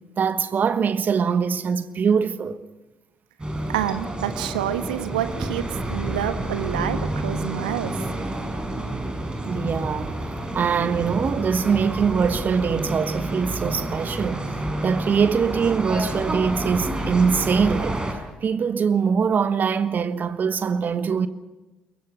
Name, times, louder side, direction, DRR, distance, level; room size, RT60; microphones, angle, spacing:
voice 1, 0.2-2.6 9.5-10.2 10.5-14.5 14.8-18.0 18.4-21.3, right 6 dB, 40° right, 1.4 m, -23 dB
sound 1, 3.4-18.1, right 1 dB, 20° right, 6.0 m, -29 dB
voice 2, 3.7-8.1, right 12 dB, 75° right, 1.3 m, -28 dB
27.0 x 22.5 x 5.9 m
figure-of-eight pair, 45°, 5 cm